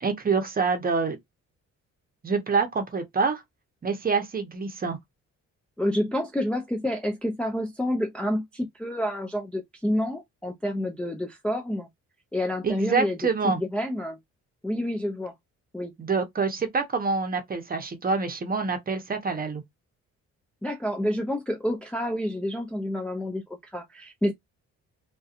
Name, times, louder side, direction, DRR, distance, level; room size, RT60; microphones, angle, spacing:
voice 1, 0.0-1.2 2.2-3.4 3.8-5.0 12.6-13.6 16.0-19.6, right 4 dB, 30° right, 0.8 m, -26 dB
voice 2, 5.8-11.9 12.3-13.2 13.4-14.2 14.6-15.3 15.7-15.9 20.6-24.3, left 1 dB, 5° left, 0.4 m, -29 dB
2.7 x 2.2 x 2.4 m
cardioid pair, 90°, 30 cm